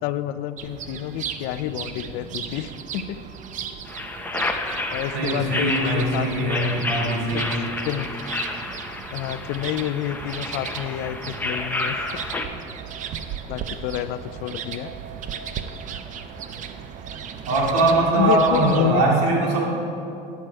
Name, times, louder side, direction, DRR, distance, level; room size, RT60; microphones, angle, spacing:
voice 1, 0.0-3.2 4.3-4.4 4.9-6.7 7.3-7.5 7.8-8.1 9.1-12.2 13.5-14.9 18.1-19.0, left 11 dB, 70° left, 14 dB, 0.4 m, -29 dB
sound 1, 0.6-19.0, right 7 dB, 45° right, 0.6 m, -36 dB
sound 2, 3.9-12.5, left 2 dB, 10° left, 0.8 m, -30 dB
voice 2, 5.1-7.7 17.5-19.6, right 2 dB, 75° right, -2 dB, 2.2 m, -21 dB
9.5 x 7.7 x 4.5 m, 2.7 s
supercardioid pair, 95°, 17 cm